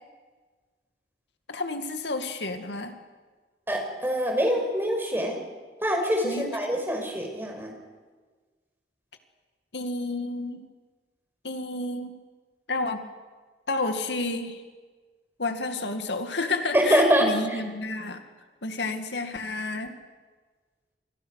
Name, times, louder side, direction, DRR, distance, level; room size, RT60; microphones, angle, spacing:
voice 1, 1.5-3.0 6.2-6.8 9.7-10.6 11.4-12.1 12.7-13.1 13.7-14.6 15.4-18.2 18.6-20.0, left 2 dB, 80° left, 6 dB, 2.2 m, -31 dB
voice 2, 3.7-5.4 5.8-7.7 16.7-17.6, equal, 15° right, 2 dB, 5.6 m, -24 dB
28.5 x 25.5 x 6.6 m, 1.4 s
head